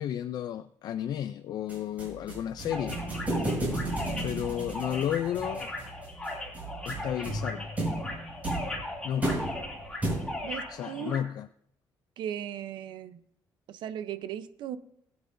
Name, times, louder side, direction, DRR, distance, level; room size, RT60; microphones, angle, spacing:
voice 1, 0.0-3.0 4.2-5.7 6.9-7.7 9.0-9.4 10.7-11.5, left 10 dB, 55° left, 0.3 m, -32 dB
sound 1, 1.7-10.6, right 1 dB, 20° right, 5.6 m, -34 dB
sound 2, 2.7-11.2, left 2 dB, 10° left, 2.5 m, -38 dB
voice 2, 10.4-11.2 12.2-13.2 13.7-14.8, right 10 dB, 80° right, 0.7 m, -37 dB
20.0 x 8.7 x 2.6 m
cardioid pair, 175°, 8 cm